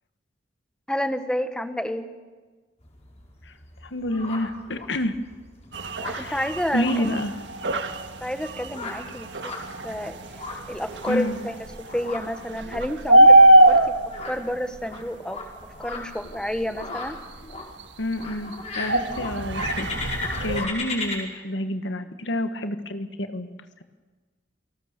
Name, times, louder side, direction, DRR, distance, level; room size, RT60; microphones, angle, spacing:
voice 1, 0.9-2.1 6.2-7.2 8.2-9.6 9.8-10.2 10.7-14.0 14.2-15.4 15.8-17.2, equal, 5° left, 9 dB, 1.2 m, -30 dB
sound 1, 2.8-21.2, left 3 dB, 40° left, 4.9 m, -37 dB
voice 2, 3.8-5.2 6.1-6.4 6.7-7.4 11.1-11.4 18.0-23.8, left 1 dB, 85° left, 9 dB, 1.5 m, -29 dB
sound 2, 5.7-15.0 15.6-17.8 18.1-20.7, right 1 dB, 85° right, 1.6 m, -22 dB
28.5 x 19.0 x 6.7 m, 1.4 s
head